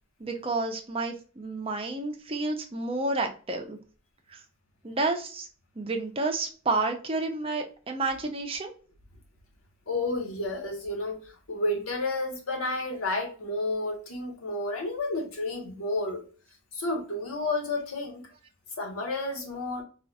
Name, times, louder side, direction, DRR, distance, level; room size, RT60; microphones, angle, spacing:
voice 1, 0.2-3.8 4.3-4.4 4.8-5.5 5.8-8.7, right 3 dB, 25° right, 0.6 m, -30 dB
voice 2, 9.9-16.2 16.7-18.3 18.8-19.8, left 2 dB, 85° left, 1.2 m, -31 dB
3.8 x 2.5 x 2.3 m
head